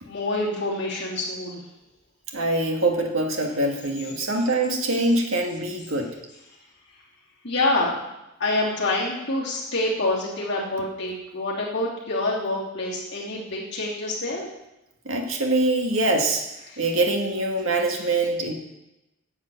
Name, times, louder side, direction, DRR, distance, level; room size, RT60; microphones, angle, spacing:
voice 1, 0.0-1.6 7.4-8.0 8.4-14.5 16.7-16.8, left 2 dB, 50° left, -7 dB, 3.1 m, -26 dB
voice 2, 2.3-6.2 15.1-16.5 16.8-18.5, right 2 dB, 70° right, 2 dB, 1.9 m, -24 dB
10.5 x 7.2 x 7.7 m, 0.92 s
head